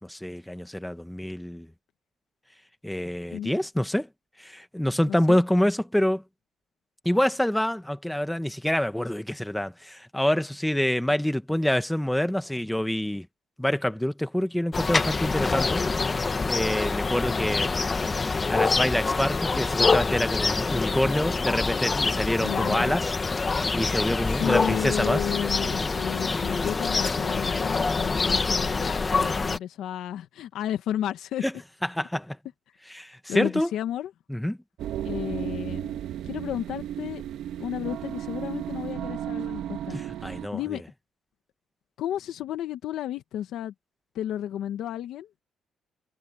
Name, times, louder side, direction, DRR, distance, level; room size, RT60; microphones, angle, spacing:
voice 1, 0.0-1.7 2.8-4.1 4.4-6.2 7.0-13.3 13.6-15.8 16.1-17.8 18.1-23.1 23.7-25.3 31.4-31.5 31.8-32.4 32.9-33.7 34.3-34.6 39.9-40.8, left 1 dB, 5° left, 1.5 m, -27 dB
voice 2, 5.1-5.4 22.4-23.0 24.3-31.4 33.3-34.1 35.0-35.9 36.2-37.2 37.6-40.0 40.5-40.8 42.0-43.7 44.1-45.3, left 11 dB, 80° left, 1.4 m, -32 dB
sound 1, 14.7-29.6, left 4 dB, 30° left, 1.4 m, -26 dB
sound 2, 34.8-40.5, right 11 dB, 80° right, 1.9 m, -34 dB
cardioid pair, 90°, 0 cm